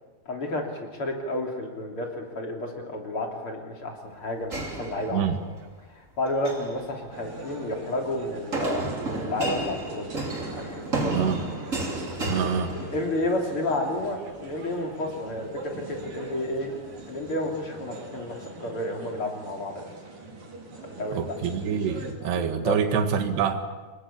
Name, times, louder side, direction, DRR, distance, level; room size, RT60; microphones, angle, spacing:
voice 1, 0.3-5.3 5.9-10.1 10.5-11.1 12.4-16.7 17.1-19.9 20.9-21.2 21.5-21.6 22.2-22.8, left 1 dB, 35° left, 1 dB, 3.6 m, -31 dB
sound 1, 4.5-5.6 6.3-6.8 8.5-13.4, right 2 dB, 20° right, 2.9 m, -31 dB
voice 2, 5.1-5.4 11.1-11.4 12.3-12.8 21.1-23.6, right 7 dB, 90° right, 7 dB, 4.0 m, -26 dB
sound 2, 7.1-22.1, right 2 dB, 55° right, 6.1 m, -42 dB
26.5 x 22.0 x 8.8 m, 1.3 s
omnidirectional pair, 4.6 m